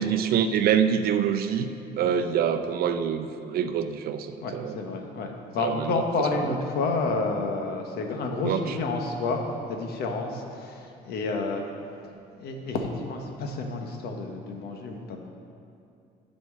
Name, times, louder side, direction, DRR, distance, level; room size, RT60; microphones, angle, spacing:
voice 1, 0.0-4.8 5.6-6.0 6.4-6.5 8.4-8.8, right 8 dB, 65° right, 9 dB, 0.5 m, -26 dB
voice 2, 4.4-9.4 9.7-11.7 12.4-15.3, left 3 dB, 70° left, 3 dB, 1.1 m, -30 dB
9.3 x 4.3 x 7.3 m, 2.6 s
cardioid pair, 110°, 17 cm